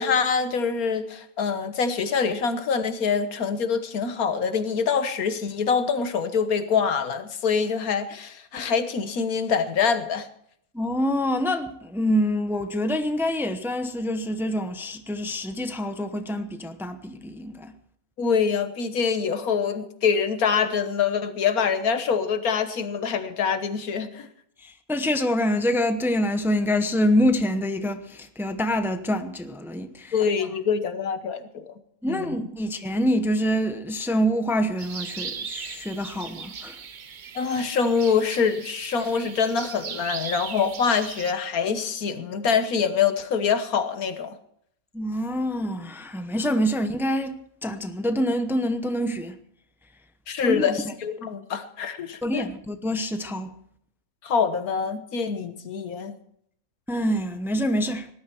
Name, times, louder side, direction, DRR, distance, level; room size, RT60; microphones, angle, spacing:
voice 1, 0.0-10.3 18.2-24.3 30.1-31.7 32.1-32.5 37.4-44.4 50.3-52.5 54.2-56.1, left 6 dB, 90° left, 1.7 m, -25 dB
voice 2, 10.7-17.7 24.6-30.1 32.0-36.8 44.9-49.4 50.4-50.7 52.2-53.5 56.9-58.1, equal, ahead, 0.7 m, -26 dB
sound 1, 34.8-41.3, right 6 dB, 40° right, 0.8 m, -38 dB
19.0 x 12.0 x 4.5 m
omnidirectional pair, 1.5 m